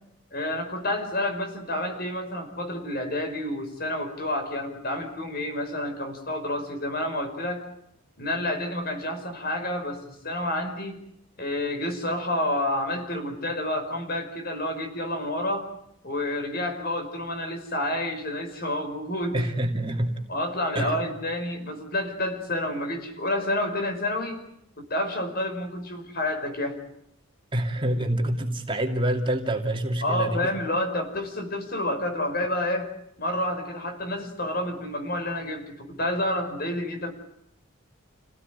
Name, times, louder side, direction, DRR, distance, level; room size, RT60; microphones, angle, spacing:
voice 1, 0.3-7.6 8.2-11.0 11.4-15.7 16.0-19.4 20.3-24.4 24.9-26.8 30.0-32.9 33.2-37.1, left 1 dB, 45° left, 6 dB, 5.6 m, -29 dB
voice 2, 19.3-20.1 20.7-21.2 27.5-30.5, right 1 dB, 25° right, 3 dB, 2.6 m, -27 dB
29.5 x 17.5 x 9.7 m, 0.76 s
head